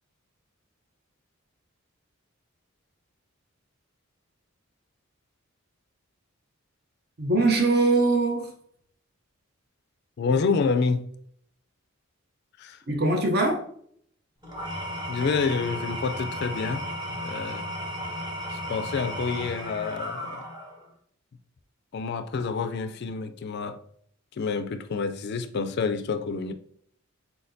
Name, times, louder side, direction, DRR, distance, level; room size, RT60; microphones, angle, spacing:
voice 1, 7.2-8.5 12.9-13.6, right 2 dB, 50° right, 0.7 m, -22 dB
voice 2, 10.2-11.1 12.6-12.8 15.1-17.7 18.5-20.5 21.9-23.8 24.3-26.5, left 5 dB, 50° left, 0.3 m, -28 dB
Engine / Tools, 14.4-20.9, equal, 20° right, 0.9 m, -34 dB
4.2 x 4.1 x 2.6 m
head